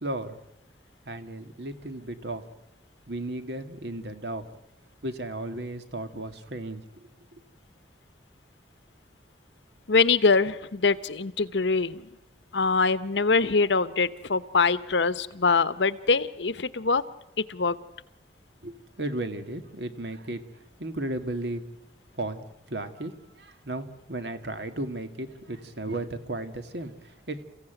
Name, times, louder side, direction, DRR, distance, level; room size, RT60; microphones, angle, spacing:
voice 1, 0.0-0.4 1.1-2.4 3.1-4.4 5.0-7.4 18.6-21.7 22.1-27.4, right 1 dB, 70° right, 9 dB, 2.0 m, -35 dB
voice 2, 9.9-12.0 12.5-17.0 17.5-17.8, left 4 dB, 85° left, 15 dB, 1.0 m, -23 dB
29.5 x 16.0 x 9.2 m, 0.87 s
head